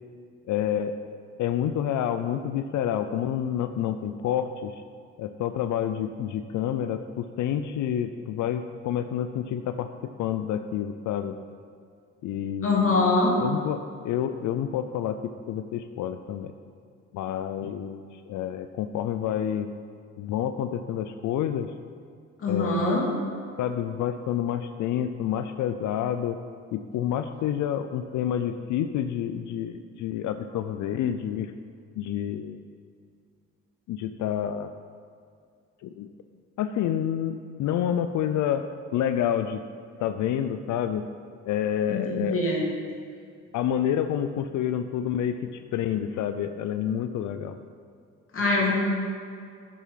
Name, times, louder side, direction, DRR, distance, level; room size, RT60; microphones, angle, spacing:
voice 1, 0.5-0.9 1.4-4.8 5.2-11.4 12.2-13.1 13.4-16.5 17.1-19.7 20.2-21.7 22.5-22.9 23.6-26.4 26.7-31.5 32.0-32.6 33.9-34.7 35.8-36.1 36.6-38.7 38.9-39.6 40.0-41.0 41.5-42.4 43.5-47.6, left 9 dB, 75° left, 9 dB, 0.5 m, -28 dB
voice 2, 12.6-13.4 22.4-23.1 41.9-42.6 48.3-48.7, left 2 dB, 45° left, -3 dB, 2.5 m, -23 dB
7.5 x 6.9 x 5.7 m, 2.3 s
cardioid pair, 90°, 30 cm